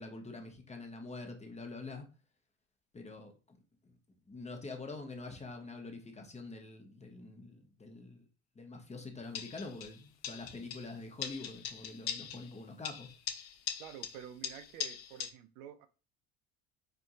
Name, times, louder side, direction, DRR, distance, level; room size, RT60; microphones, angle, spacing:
voice 1, 0.0-2.1 2.9-3.6 3.8-4.0 4.3-8.3 8.5-13.1, left 3 dB, 15° left, 0.8 m, -45 dB
sound 1, 9.3-10.0 10.2-10.9 11.2-12.5 12.8-15.3, left 9 dB, 90° left, 0.5 m, -41 dB
voice 2, 13.8-15.9, right 10 dB, 75° right, 0.5 m, -49 dB
4.4 x 2.6 x 2.5 m
hypercardioid pair, 70°, 40 cm